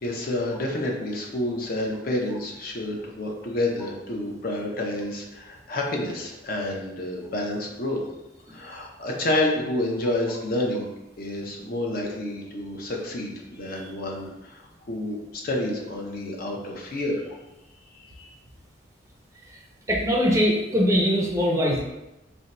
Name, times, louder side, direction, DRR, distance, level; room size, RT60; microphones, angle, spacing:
voice 1, 0.0-8.0 8.5-10.9 11.2-17.2 17.9-18.3, left 1 dB, 50° left, 0 dB, 0.5 m, -29 dB
voice 2, 19.9-21.8, equal, 15° right, -2 dB, 0.5 m, -22 dB
2.6 x 2.1 x 4.0 m, 0.95 s
head